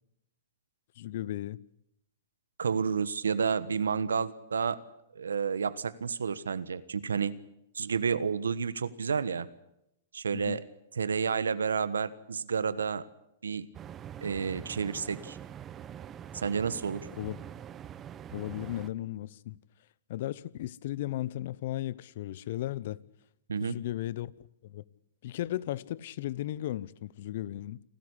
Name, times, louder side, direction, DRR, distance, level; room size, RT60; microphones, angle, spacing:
voice 1, 1.0-1.6 10.3-10.6 17.2-17.4 18.3-19.6 20.1-23.0 23.6-24.8 25.2-27.8, left 14 dB, 60° left, 0.9 m, -36 dB
voice 2, 2.6-4.8 5.1-7.3 7.7-9.5 10.1-10.6 11.0-13.1 13.4-13.7 14.2-15.4 16.3-17.1 23.5-23.8, right 6 dB, 90° right, 1.3 m, -30 dB
sound 1, 13.7-18.9, right 9 dB, 25° right, 1.2 m, -44 dB
28.5 x 13.5 x 9.9 m
hypercardioid pair, 120°, 0 cm